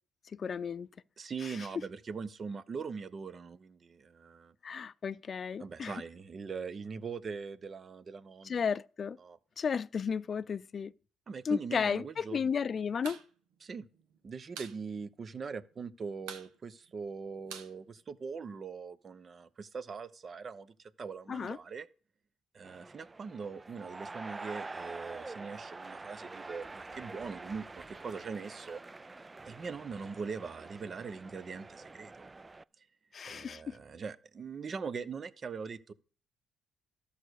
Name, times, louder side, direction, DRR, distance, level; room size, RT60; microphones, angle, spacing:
voice 1, 0.3-0.9 4.6-6.0 8.4-9.2 9.6-10.9 11.4-13.2 21.3-21.6 33.1-33.8, left 6 dB, 50° left, 0.5 m, -33 dB
voice 2, 1.2-4.5 5.6-8.6 9.2-9.4 11.3-12.5 13.6-13.9 14.2-21.9 22.5-28.8 29.4-32.3 32.8-32.9 33.2-35.9, right 5 dB, 45° right, 0.9 m, -41 dB
sound 1, 13.0-13.3 13.5-13.6 13.9-14.8 15.1-15.2 15.5-15.9 16.2-18.6, right 8 dB, 90° right, 1.4 m, -47 dB
sound 2, 22.6-32.6, right 3 dB, 25° right, 0.4 m, -46 dB
13.0 x 5.1 x 6.5 m
supercardioid pair, 65°, 0 cm